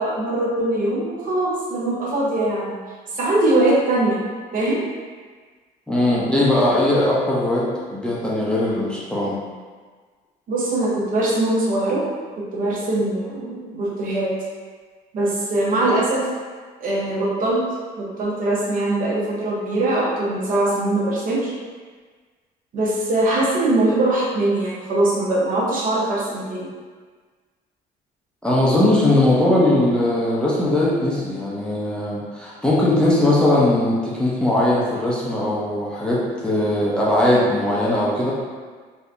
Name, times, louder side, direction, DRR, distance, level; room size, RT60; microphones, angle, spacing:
voice 1, 0.0-2.8 3.2-4.2 4.5-4.8 10.5-12.0 12.4-14.3 15.1-16.2 16.8-17.6 18.0-21.5 22.7-26.7, right 2 dB, 55° right, -5 dB, 0.9 m, -21 dB
voice 2, 5.9-7.6 7.9-9.4 28.4-38.3, left 1 dB, 5° left, -7 dB, 0.6 m, -19 dB
3.4 x 2.7 x 2.5 m, 1.5 s
cardioid pair, 110°, 17 cm